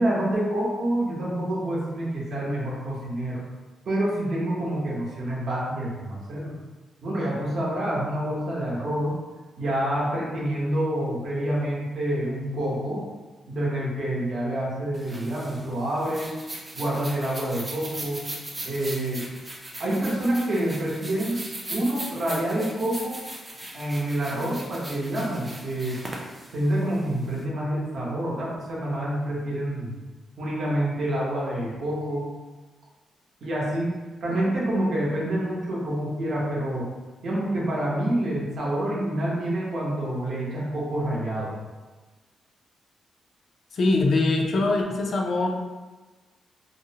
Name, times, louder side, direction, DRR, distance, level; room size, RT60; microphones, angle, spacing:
voice 1, 0.0-3.4 3.9-6.6 7.0-9.1 9.6-13.0 13.5-16.3 16.7-18.3 18.6-19.3 19.8-21.4 21.7-23.2 23.7-26.0 26.5-29.9 30.4-32.3 33.4-36.9 37.2-41.5, right 1 dB, 55° right, -5 dB, 0.7 m, -27 dB
sound 1, 14.9-27.4, right 1 dB, 20° right, 0.4 m, -39 dB
voice 2, 43.7-45.5, left 2 dB, 50° left, 1 dB, 0.4 m, -22 dB
2.5 x 2.0 x 2.7 m, 1.3 s
cardioid pair, 135°, 0 cm